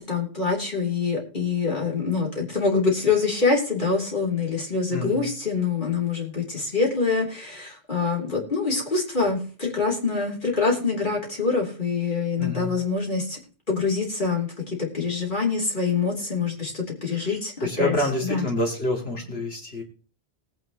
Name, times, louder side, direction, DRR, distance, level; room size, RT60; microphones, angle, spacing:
voice 1, 0.0-13.4 13.7-17.9 18.2-18.4, left 4 dB, 50° left, -2 dB, 3.6 m, -25 dB
voice 2, 4.9-5.3 12.4-12.8 17.2-17.3 17.6-19.8, left 1 dB, 70° left, 0 dB, 3.1 m, -27 dB
19.0 x 9.3 x 3.1 m, 0.38 s
omnidirectional pair, 1.1 m